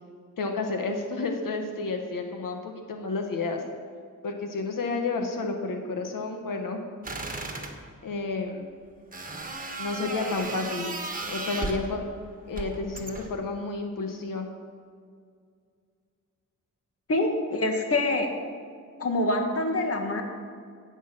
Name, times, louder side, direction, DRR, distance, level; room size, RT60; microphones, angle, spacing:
voice 1, 0.4-3.6 4.2-6.8 8.0-8.7 9.8-10.9 11.3-12.0 12.5-14.5, left 3 dB, 80° left, 4 dB, 1.3 m, -31 dB
sound 1, 7.0-7.8 9.1-11.9 12.5-13.4, right 3 dB, 25° right, 1.3 m, -35 dB
voice 2, 17.1-18.3 19.0-20.2, left 2 dB, 45° left, 3 dB, 1.5 m, -25 dB
17.0 x 7.2 x 6.0 m, 2.2 s
wide cardioid pair, 150°, 32 cm